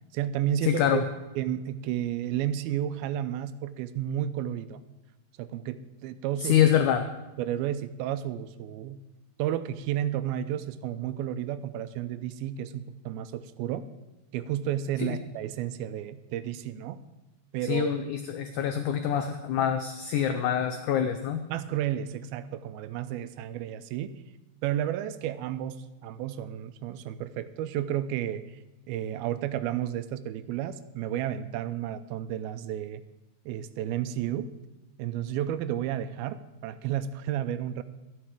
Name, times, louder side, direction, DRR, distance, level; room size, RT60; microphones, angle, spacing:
voice 1, 0.1-1.0 1.4-4.8 5.4-6.6 7.4-9.0 9.4-13.9 14.3-17.0 17.5-17.9 21.5-24.2 24.6-28.6 28.9-33.0 33.5-34.5 35.0-37.8, right 11 dB, 85° right, 12 dB, 2.4 m, -32 dB
voice 2, 0.7-1.0 6.4-7.0 15.0-15.2 17.7-21.4, left 9 dB, 80° left, 7 dB, 1.8 m, -25 dB
13.5 x 10.0 x 4.9 m, 1.1 s
omnidirectional pair, 4.3 m